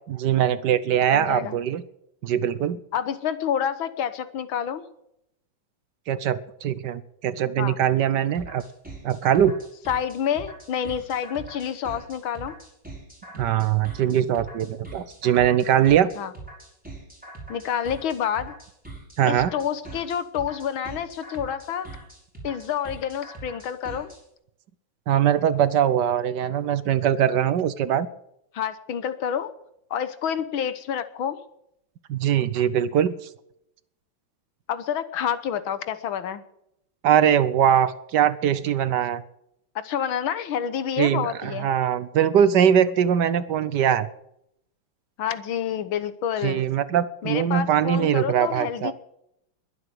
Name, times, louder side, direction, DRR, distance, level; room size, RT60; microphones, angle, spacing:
voice 1, 0.1-1.8 2.2-2.8 6.1-8.6 9.0-9.6 13.3-16.1 19.2-19.5 25.1-28.1 32.1-33.1 37.0-39.2 41.0-44.1 46.4-48.9, right 9 dB, 65° right, 15 dB, 1.3 m, -21 dB
voice 2, 1.1-1.6 2.9-4.9 7.6-7.8 9.9-12.6 16.2-16.3 17.5-18.5 19.2-21.9 22.4-24.1 28.5-29.5 29.9-31.4 34.7-36.4 39.8-41.7 45.2-46.6 47.2-48.9, left 8 dB, 90° left, 12 dB, 1.9 m, -28 dB
sound 1, 8.3-24.2, right 2 dB, 5° right, 5.3 m, -42 dB
21.5 x 8.0 x 7.8 m, 0.78 s
omnidirectional pair, 2.1 m